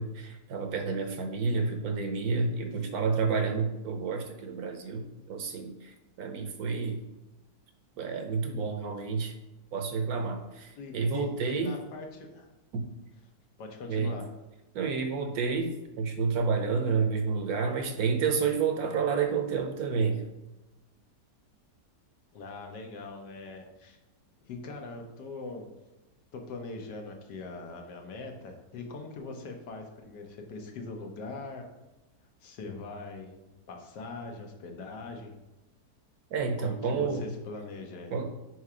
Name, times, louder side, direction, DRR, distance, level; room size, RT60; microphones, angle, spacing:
voice 1, 0.0-7.0 8.0-9.3 9.7-11.7 12.7-12.8 13.9-14.2 14.7-20.2 36.3-37.3 38.1-38.3, right 5 dB, 65° right, 5 dB, 1.1 m, -30 dB
voice 2, 10.8-12.5 13.6-14.3 22.3-24.0 24.4-25.7 26.3-31.6 32.4-33.4 33.7-35.3 36.6-38.1, left 3 dB, 80° left, 3 dB, 1.5 m, -41 dB
4.8 x 4.3 x 4.9 m, 1.0 s
omnidirectional pair, 1.8 m